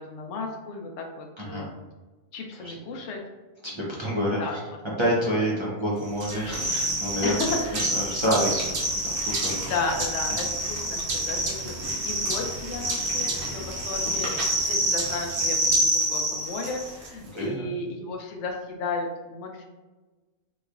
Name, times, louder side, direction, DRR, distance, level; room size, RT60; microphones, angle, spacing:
voice 1, 0.0-1.7 2.3-3.2 4.4-4.6 7.2-7.8 9.7-19.6, left 3 dB, 70° left, 1 dB, 0.8 m, -33 dB
voice 2, 3.6-4.6 5.0-8.7 9.0-9.6 12.4-12.5 17.3-17.8, equal, 30° right, -6 dB, 0.6 m, -28 dB
sound 1, 6.2-17.1, right 1 dB, 60° right, 1.0 m, -27 dB
3.7 x 3.0 x 2.4 m, 1.2 s
omnidirectional pair, 1.3 m